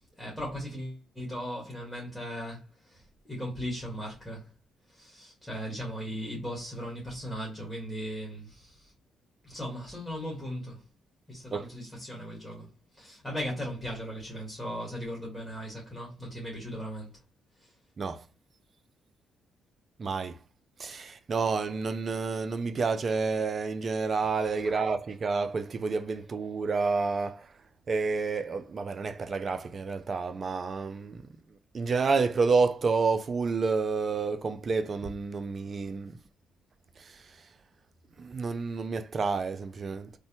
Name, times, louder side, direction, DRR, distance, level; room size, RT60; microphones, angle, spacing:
voice 1, 0.1-4.5 4.9-8.9 9.4-10.8 11.3-17.1 17.6-17.7 24.4-24.8, equal, 5° left, 1.3 m, -38 dB
voice 2, 20.0-20.4 20.8-27.5 27.9-31.2 31.7-36.2 38.2-40.1, right 4 dB, 40° right, 0.3 m, -29 dB
3.2 x 2.1 x 2.8 m
cardioid pair, 90°, 0 cm